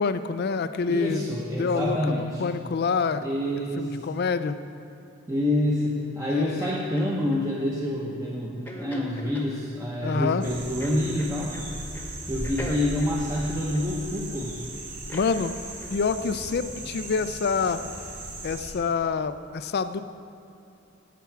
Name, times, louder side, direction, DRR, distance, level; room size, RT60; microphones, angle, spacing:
voice 1, 0.0-1.2 1.6-3.2 3.6-4.6 6.3-6.7 10.0-10.4 15.1-15.6 15.9-17.8 18.4-20.0, left 5 dB, 50° left, 11 dB, 0.4 m, -27 dB
voice 2, 0.9-2.4 3.2-4.1 5.3-11.6 12.3-14.5, left 1 dB, 15° right, -5 dB, 0.8 m, -27 dB
sound 1, 6.6-7.5 8.7-9.5 10.8-11.7 11.9-12.1 12.4-14.2 15.1-15.4 15.8-16.0, left 1 dB, 10° left, 1.0 m, -40 dB
sound 2, 10.4-18.7, right 1 dB, 35° right, 2.2 m, -38 dB
16.5 x 5.9 x 4.6 m, 2.8 s
head